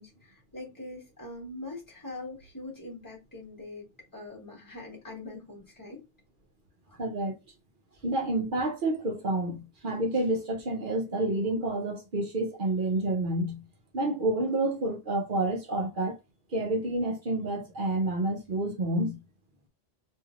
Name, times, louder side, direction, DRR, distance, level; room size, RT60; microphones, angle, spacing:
voice 1, 0.0-3.8 4.1-6.0 6.9-7.0, left 2 dB, 20° left, 1.5 m, -43 dB
voice 2, 7.0-7.3 8.0-13.6 13.9-16.2 16.5-19.2, right 2 dB, 55° right, 0.9 m, -29 dB
3.1 x 2.7 x 2.4 m
omnidirectional pair, 1.1 m